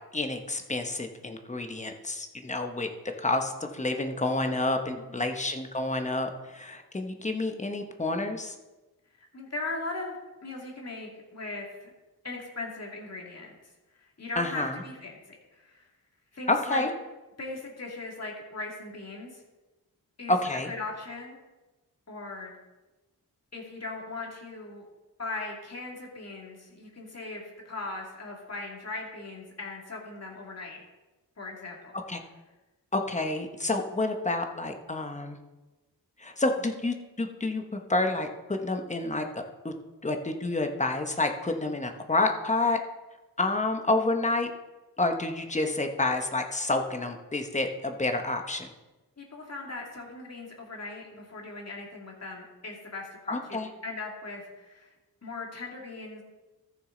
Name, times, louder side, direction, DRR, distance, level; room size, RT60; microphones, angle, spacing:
voice 1, 0.1-2.9 3.2-8.6 14.4-14.8 16.5-16.9 20.3-20.7 32.1-32.2 32.9-35.4 36.2-39.7 40.0-42.8 43.4-44.5 45.0-48.7 53.3-53.7, left 2 dB, 20° left, 5 dB, 0.9 m, -29 dB
voice 2, 4.9-5.3 9.2-11.9 12.2-13.5 13.9-15.1 15.5-15.9 16.3-16.9 17.4-19.4 20.2-20.4 20.7-21.4 22.1-22.5 23.5-24.8 25.2-30.8 31.4-31.9 49.2-54.9 55.2-56.2, left 2 dB, 45° left, -1 dB, 2.5 m, -39 dB
14.0 x 6.4 x 3.9 m, 1.1 s
wide cardioid pair, 110°, 37 cm